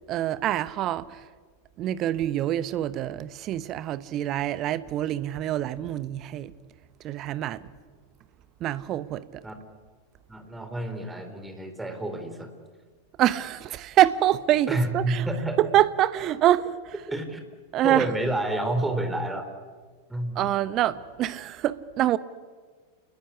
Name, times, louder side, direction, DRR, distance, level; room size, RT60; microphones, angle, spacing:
voice 1, 0.1-1.2 1.8-6.5 7.0-7.7 8.6-9.4 13.2-15.3 15.6-16.9 17.7-18.1 20.3-22.2, right 13 dB, 35° right, 1.0 m, -25 dB
voice 2, 10.3-12.5 14.7-15.6 17.1-17.4 17.8-19.4 20.1-20.4, right 1 dB, 10° right, 3.8 m, -29 dB
29.0 x 20.0 x 9.9 m
figure-of-eight pair, 90°, 0 cm